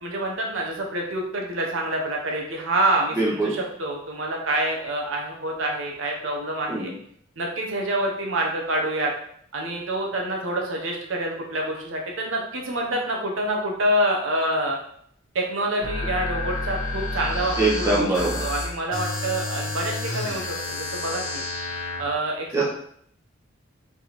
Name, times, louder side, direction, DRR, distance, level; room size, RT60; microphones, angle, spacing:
voice 1, 0.0-6.9 7.4-9.1 9.5-14.8 15.3-18.1 18.4-21.4 22.0-22.6, right 1 dB, 80° right, 0 dB, 0.8 m, -27 dB
voice 2, 3.2-3.5 6.7-6.9 17.6-18.4 22.5-22.6, right 2 dB, 15° right, -5 dB, 1.0 m, -23 dB
sound 1, 15.8-22.0, left 2 dB, 80° left, 1.0 m, -30 dB
4.4 x 3.4 x 3.0 m, 0.66 s
head